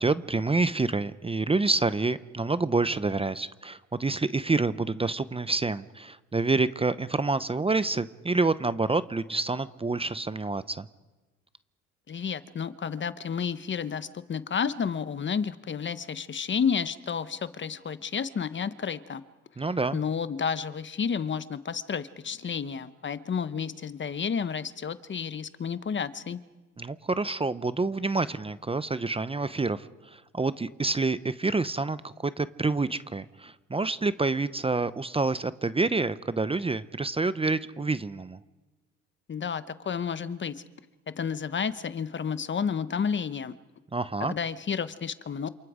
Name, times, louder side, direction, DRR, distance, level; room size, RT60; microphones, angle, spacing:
voice 1, 0.0-10.9 19.6-20.0 26.8-38.4 43.9-44.4, right 3 dB, 20° right, 14 dB, 0.7 m, -28 dB
voice 2, 12.1-19.2 19.9-26.4 39.3-40.5 41.1-43.5 44.2-45.5, left 6 dB, 40° left, 14 dB, 1.0 m, -31 dB
28.5 x 27.0 x 5.0 m, 1.2 s
cardioid pair, 90°, 30 cm